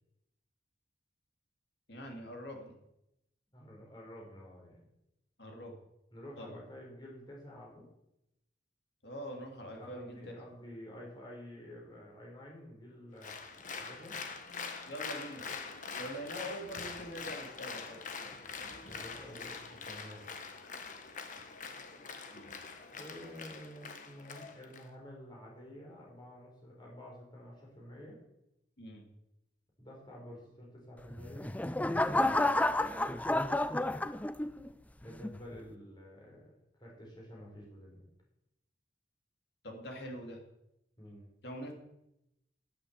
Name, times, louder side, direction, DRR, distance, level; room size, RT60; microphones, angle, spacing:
voice 1, 1.9-2.8 5.4-5.7 6.4-6.6 9.0-10.3 14.9-15.5 15.9-18.3 22.3-22.6 28.8-29.1 32.3-32.6 39.6-40.4 41.4-41.7, equal, 55° left, 2 dB, 3.0 m, -44 dB
voice 2, 3.5-4.9 6.1-7.9 9.8-14.2 18.9-20.3 22.9-28.2 29.8-31.5 35.0-38.0 41.0-41.3, equal, 25° left, -3 dB, 4.6 m, -50 dB
Applause, 13.2-24.8, left 5 dB, 40° left, 1.4 m, -44 dB
sound 1, 31.1-34.7 35.2-35.6, left 2 dB, 10° left, 0.4 m, -30 dB
10.0 x 8.6 x 8.2 m, 0.85 s
head